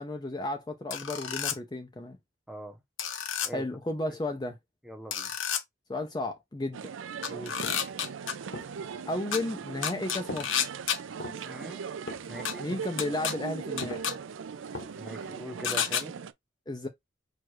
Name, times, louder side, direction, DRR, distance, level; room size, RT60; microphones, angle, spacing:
voice 1, 0.0-2.2 3.5-4.6 5.9-6.9 9.1-10.6 12.6-14.2 16.7-16.9, left 2 dB, 20° left, 0.5 m, -33 dB
sound 1, 0.9-1.6 3.0-3.5 5.1-5.6 7.2-8.3 9.3-9.4 9.8-11.0 12.5-12.6 13.0-13.3 13.8-14.1 15.6-16.0, left 8 dB, 80° left, 0.8 m, -30 dB
voice 2, 4.8-5.3 7.3-7.5 11.4-11.8 12.3-12.7 14.9-16.2, right 1 dB, ahead, 0.8 m, -41 dB
sound 2, 6.7-16.3, right 6 dB, 80° right, 0.4 m, -39 dB
sound 3, 7.6-7.9 8.5-8.9 9.3-9.5 10.3-10.6 11.0-11.5 12.1-12.4 12.8-13.1 13.8-14.1 14.7-15.1 15.4-15.5, left 1 dB, 55° left, 1.1 m, -40 dB
4.6 x 2.4 x 4.5 m
head